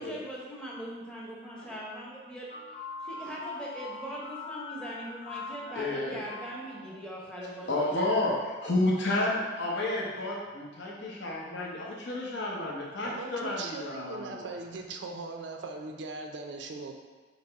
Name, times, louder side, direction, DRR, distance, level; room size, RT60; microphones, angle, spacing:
voice 1, 0.0-2.6 3.0-8.1, equal, 5° left, -5 dB, 0.7 m, -41 dB
sound 1, 2.5-7.6, left 3 dB, 35° left, 0.3 m, -42 dB
voice 2, 5.8-6.2 7.7-14.5, left 2 dB, 65° left, -4 dB, 0.7 m, -31 dB
voice 3, 13.0-17.0, right 3 dB, 65° right, 3 dB, 0.4 m, -39 dB
4.0 x 2.9 x 4.5 m, 1.3 s
head